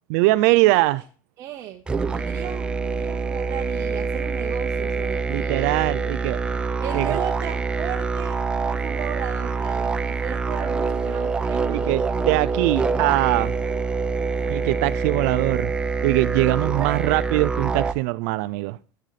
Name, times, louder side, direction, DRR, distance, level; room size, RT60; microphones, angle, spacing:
voice 1, 0.1-1.0 5.3-6.4 6.9-7.2 11.7-13.5 14.5-15.7 16.0-18.8, right 20 dB, 60° right, 0.5 m, -22 dB
voice 2, 0.6-1.0 1.4-1.8 2.1-5.8 6.8-12.0 16.6-17.1, right 11 dB, 35° right, 0.9 m, -35 dB
sound 1, 1.9-17.9, right 4 dB, 10° right, 0.5 m, -25 dB
9.8 x 9.1 x 4.1 m
cardioid pair, 165°, 9 cm